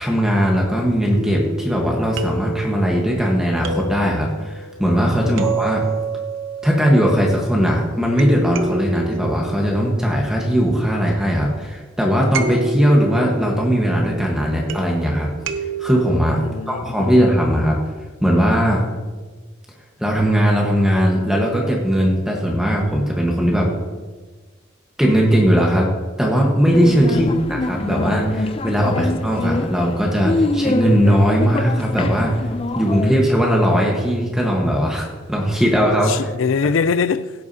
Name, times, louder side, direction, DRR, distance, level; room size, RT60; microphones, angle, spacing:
voice 1, 0.0-5.8 6.6-15.3 15.8-16.4 16.7-17.8 18.2-18.8 20.0-23.7 25.0-25.9 26.2-32.3 32.7-36.1, equal, 5° right, 1.3 m, -18 dB
sound 1, 1.1-7.6 8.2-11.2 12.3-16.2, right 3 dB, 80° right, 0.8 m, -29 dB
voice 2, 16.4-17.1 27.1-27.3 28.9-29.1 36.0-37.3, left 5 dB, 90° left, 0.4 m, -23 dB
sound 2, 26.7-33.1, left 2 dB, 30° left, 0.4 m, -25 dB
16.0 x 8.5 x 2.8 m
head